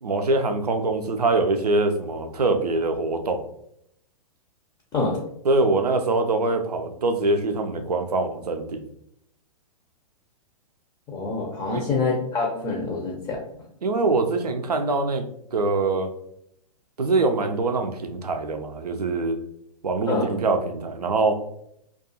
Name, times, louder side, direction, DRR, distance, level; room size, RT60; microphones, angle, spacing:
voice 1, 0.0-3.4 5.5-8.8 11.7-11.8 13.8-15.2 15.5-16.1 17.0-19.4 19.8-21.4, right 3 dB, 85° right, 6 dB, 0.4 m, -23 dB
voice 2, 11.1-13.4 20.1-20.3, left 3 dB, 15° left, 0 dB, 0.5 m, -26 dB
2.3 x 2.3 x 2.7 m, 0.73 s
figure-of-eight pair, 110°, 20 cm